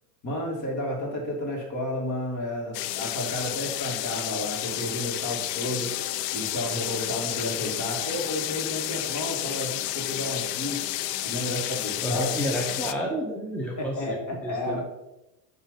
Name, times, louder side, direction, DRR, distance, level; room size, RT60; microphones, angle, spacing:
voice 1, 0.2-5.9 6.3-10.8 11.2-12.3 13.8-14.8, left 1 dB, 40° left, -1 dB, 2.4 m, -32 dB
sound 1, 2.7-12.9, left 14 dB, 85° left, 0.5 m, -31 dB
voice 2, 12.0-14.2 14.4-14.8, equal, 5° left, -1 dB, 0.7 m, -30 dB
7.3 x 3.4 x 5.2 m, 0.97 s
supercardioid pair, 110°, 48 cm